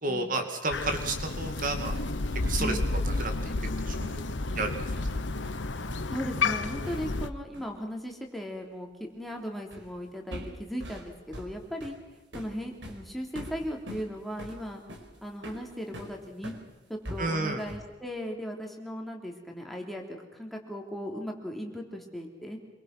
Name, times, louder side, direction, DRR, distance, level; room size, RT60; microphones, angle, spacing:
voice 1, 0.0-1.9 2.4-3.3 3.9-4.2 4.6-4.8 17.2-17.6, right 2 dB, 45° right, 5 dB, 2.3 m, -31 dB
Crow, 0.7-7.3, left 3 dB, 85° left, 1.1 m, -31 dB
sound 1, 1.3-7.3 7.5-7.8 9.7-10.0 10.3-16.6 17.0-18.0, equal, 85° right, 4.6 m, -43 dB
voice 2, 6.1-12.0 12.3-14.8 15.2-16.5 16.9-22.6, equal, ahead, 1 dB, 3.4 m, -37 dB
26.0 x 23.0 x 6.1 m, 1.2 s
head